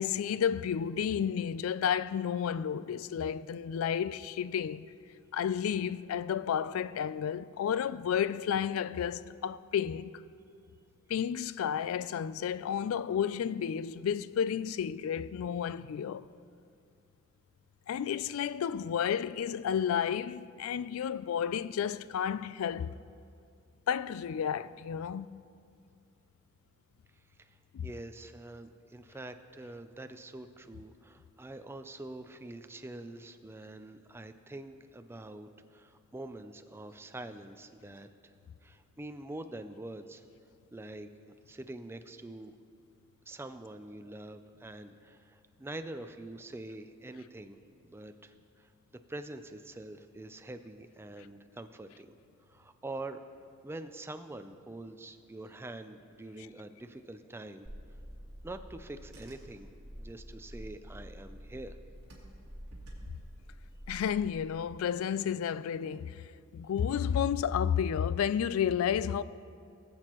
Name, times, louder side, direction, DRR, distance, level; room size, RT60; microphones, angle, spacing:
voice 1, 0.0-4.9 5.3-10.1 11.1-16.3 17.9-22.9 23.9-25.4 27.7-27.9 63.9-69.2, left 8 dB, 90° left, 0.3 m, -31 dB
voice 2, 27.4-38.3 38.6-40.2 40.7-42.5 43.3-47.6 47.8-48.7 49.1-52.1 52.5-53.2 53.6-57.7 58.4-59.7 60.0-61.8, right 2 dB, 10° right, 0.4 m, -45 dB
Car / Engine, 57.6-64.3, equal, 55° right, 2.4 m, -48 dB
19.0 x 7.9 x 3.0 m
head